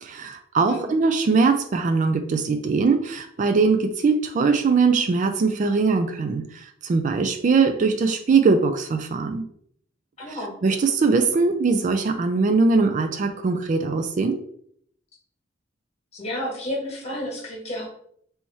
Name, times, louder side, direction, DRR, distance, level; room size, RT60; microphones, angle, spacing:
voice 1, 0.0-9.5 10.3-10.4 10.6-14.4, right 4 dB, 40° right, 7 dB, 0.3 m, -21 dB
voice 2, 10.2-10.5 16.1-17.9, left 1 dB, 35° left, -2 dB, 1.5 m, -31 dB
3.4 x 3.0 x 4.1 m, 0.66 s
head